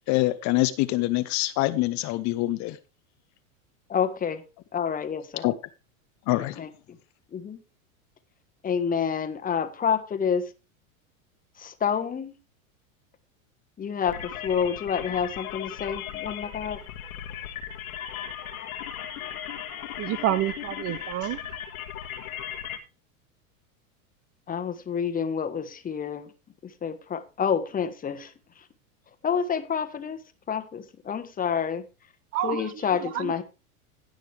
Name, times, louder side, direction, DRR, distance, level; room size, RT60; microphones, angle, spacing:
voice 1, 0.1-2.8 5.4-5.5 6.3-6.6, left 18 dB, 40° left, 0.7 m, -25 dB
voice 2, 3.9-4.4 4.7-5.4 6.6-6.7 7.3-7.6 8.6-10.5 11.6-12.3 13.8-16.8 24.5-26.3 26.8-28.3 29.2-30.2 30.5-31.8 32.4-33.4, left 7 dB, 20° left, 1.2 m, -28 dB
sound 1, 14.0-22.8, left 9 dB, 85° left, 1.8 m, -37 dB
voice 3, 20.0-21.4 32.3-32.7 33.1-33.4, right 12 dB, 35° right, 0.5 m, -28 dB
16.5 x 6.4 x 3.4 m
supercardioid pair, 120°, 42 cm